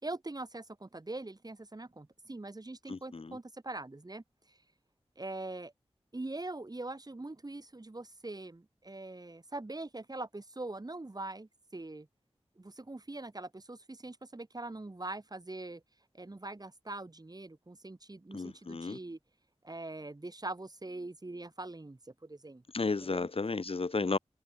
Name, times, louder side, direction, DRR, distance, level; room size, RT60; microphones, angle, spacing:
voice 1, 0.0-4.6 5.2-5.7 6.1-12.1 12.6-15.8 16.1-19.2 19.6-22.6 23.0-23.3, right 2 dB, 35° right, 7.1 m, -43 dB
voice 2, 2.9-3.4 18.3-19.0 22.7-24.2, left 3 dB, 60° left, 1.7 m, -33 dB
wide cardioid pair, 85°, 11 cm